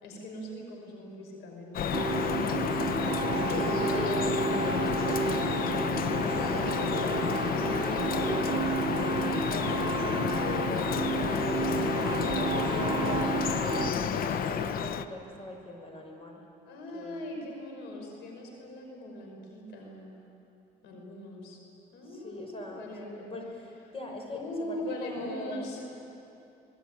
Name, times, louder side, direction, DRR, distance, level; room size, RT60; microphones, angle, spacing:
voice 1, 0.0-2.5 3.2-5.6 13.5-14.2 16.6-20.2 20.8-21.6 21.9-23.3 24.3-25.8, left 1 dB, 90° left, 1 dB, 5.5 m, -41 dB
Drip, 1.7-15.1, left 7 dB, 60° left, 1.1 m, -30 dB
sound 1, 1.9-13.9, right 6 dB, 25° right, 1.5 m, -32 dB
voice 2, 3.3-5.2 6.2-11.9 12.3-16.4 16.9-17.2 22.1-22.8 23.2-25.7, left 1 dB, 35° left, 3 dB, 5.9 m, -41 dB
26.5 x 21.0 x 9.3 m, 2.8 s
cardioid pair, 110°, 17 cm